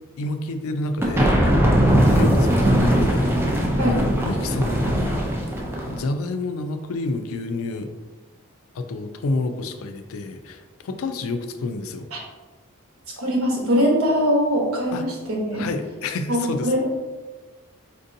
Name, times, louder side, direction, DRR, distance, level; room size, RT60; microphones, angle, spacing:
voice 1, 0.2-1.6 1.9-3.5 3.9-5.2 5.9-7.9 8.7-12.1 14.9-15.1 15.5-16.8, left 2 dB, 75° left, 8 dB, 0.4 m, -29 dB
sound 1, 1.0-6.0, equal, 10° right, 0.4 m, -20 dB
voice 2, 13.2-15.6 16.3-16.8, equal, 80° right, -2 dB, 1.0 m, -22 dB
4.3 x 2.6 x 2.6 m, 1.3 s
head